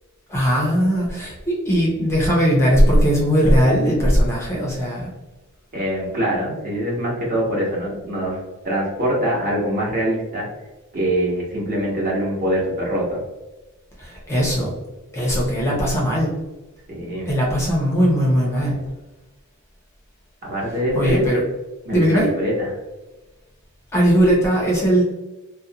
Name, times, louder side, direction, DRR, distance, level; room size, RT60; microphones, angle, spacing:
voice 1, 0.3-5.1 14.0-14.7 15.1-16.3 17.3-18.8 20.9-21.4 21.9-22.3 23.9-25.0, equal, 10° left, -4 dB, 0.5 m, -18 dB
voice 2, 5.7-8.4 8.6-10.4 10.9-13.2 16.9-17.3 20.5-21.2 21.9-22.7, equal, 40° right, -4 dB, 0.9 m, -23 dB
2.5 x 2.1 x 2.7 m, 1.1 s
head